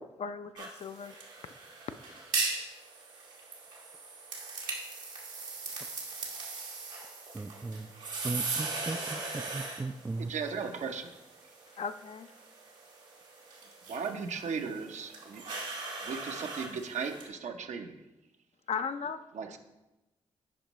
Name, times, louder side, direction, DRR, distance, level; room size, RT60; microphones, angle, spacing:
voice 1, 0.2-1.1 1.4-1.5 11.8-12.3 18.7-19.2, left 6 dB, 55° left, 10 dB, 0.5 m, -36 dB
sound 1, 0.6-17.3, right 3 dB, 85° right, 1.4 m, -39 dB
voice 2, 7.3-7.9 8.2-10.3, right 3 dB, 15° right, 14 dB, 0.3 m, -37 dB
voice 3, 10.2-11.1 13.9-15.4 16.0-18.0 19.3-19.6, right 5 dB, 70° right, 5 dB, 0.7 m, -36 dB
8.6 x 5.2 x 3.1 m, 1.0 s
supercardioid pair, 40°, 13 cm